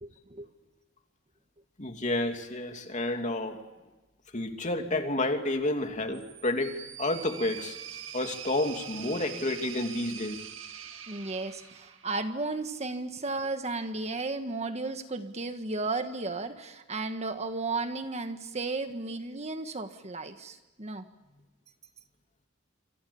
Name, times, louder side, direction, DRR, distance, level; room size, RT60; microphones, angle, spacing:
voice 1, 0.0-0.5 11.1-21.0, right 3 dB, 35° right, 8 dB, 1.5 m, -34 dB
voice 2, 1.8-3.6 4.3-7.8 8.1-10.4, left 1 dB, 35° left, 5 dB, 2.7 m, -30 dB
sound 1, 6.1-12.4, right 9 dB, 75° right, 2.2 m, -43 dB
27.5 x 26.0 x 7.1 m, 1.1 s
head